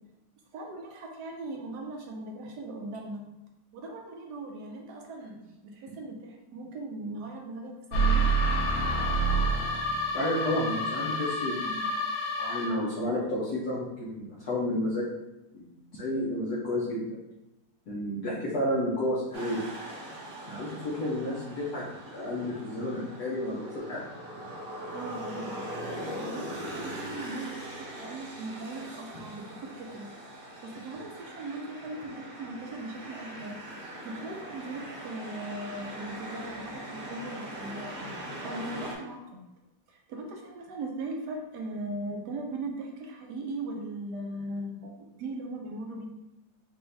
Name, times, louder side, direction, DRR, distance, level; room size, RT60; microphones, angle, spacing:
voice 1, 0.5-3.2 3.7-8.3 20.1-20.2 24.9-25.7 26.2-30.1 30.3-33.6 34.0-38.2 38.4-39.4 39.9-46.1, right 2 dB, 70° right, 1 dB, 1.2 m, -39 dB
sound 1, 7.9-12.9, right 2 dB, 75° left, 1.6 m, -28 dB
voice 2, 10.1-11.8 12.4-15.0 15.5-17.2 17.9-19.6 20.5-24.0, left 1 dB, 60° left, -7 dB, 1.3 m, -31 dB
sound 2, 19.3-38.9, right 1 dB, 45° right, 0.8 m, -41 dB
5.2 x 2.6 x 3.3 m, 0.95 s
omnidirectional pair, 2.0 m